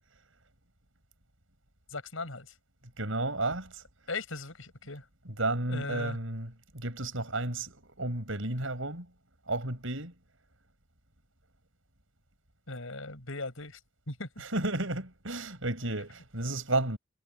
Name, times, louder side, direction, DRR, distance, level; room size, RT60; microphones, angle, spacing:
voice 1, 1.9-2.5 4.1-5.0 5.7-6.2 12.7-13.8 14.1-14.3, left 3 dB, 75° left, 6.6 m, -38 dB
voice 2, 3.0-3.8 5.4-9.1 9.5-10.1 14.4-17.0, right 2 dB, 70° right, 7.5 m, -32 dB
head